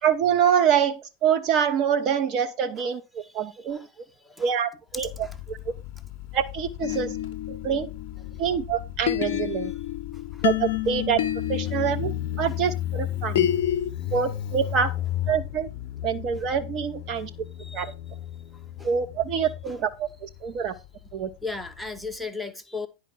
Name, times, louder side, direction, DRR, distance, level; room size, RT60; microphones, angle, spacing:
voice 1, 0.0-3.0 3.3-3.9 4.4-5.6 6.3-7.2 7.5-7.9 8.4-9.7 10.4-11.2 11.5-12.1 12.4-13.5 14.1-14.9 15.3-15.7 16.0-17.3 17.7-17.9 18.8-20.7 21.1-21.3, right 8 dB, 35° right, 0.7 m, -25 dB
Motorcycle, 4.9-22.1, left 12 dB, 40° left, 1.0 m, -35 dB
sound 1, 6.8-8.6 9.1-13.9, left 12 dB, 55° left, 0.5 m, -29 dB
voice 2, 17.6-17.9 18.8-18.9 19.7-19.8 21.4-22.9, left 4 dB, ahead, 0.8 m, -36 dB
10.0 x 4.9 x 4.5 m
figure-of-eight pair, 90°, 0 cm